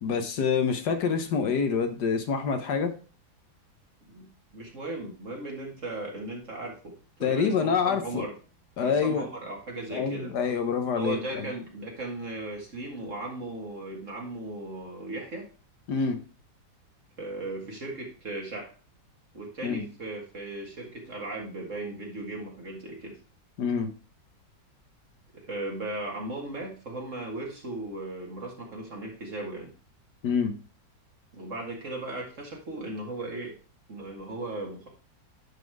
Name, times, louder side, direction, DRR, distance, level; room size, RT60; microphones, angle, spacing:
voice 1, 0.0-2.9 7.2-8.3 8.8-9.3 9.9-11.5 15.9-16.2 19.6-19.8 23.6-23.9 30.2-30.5, left 6 dB, 65° left, 7 dB, 1.5 m, -26 dB
voice 2, 4.1-8.3 8.8-10.3 10.9-15.5 17.2-18.7 19.3-23.2 25.3-29.7 31.3-33.5 33.9-34.9, right 2 dB, 40° right, -1 dB, 2.0 m, -37 dB
10.5 x 4.1 x 4.7 m, 0.37 s
omnidirectional pair, 2.1 m